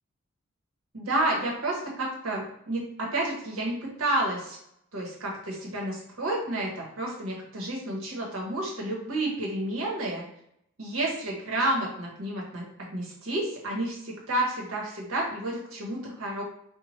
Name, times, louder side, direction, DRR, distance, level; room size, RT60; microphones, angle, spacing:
voice 1, 0.9-4.6 4.9-10.2 10.8-12.6 12.9-16.4, right 1 dB, 90° right, -2 dB, 0.9 m, -30 dB
2.9 x 2.1 x 3.0 m, 0.75 s
head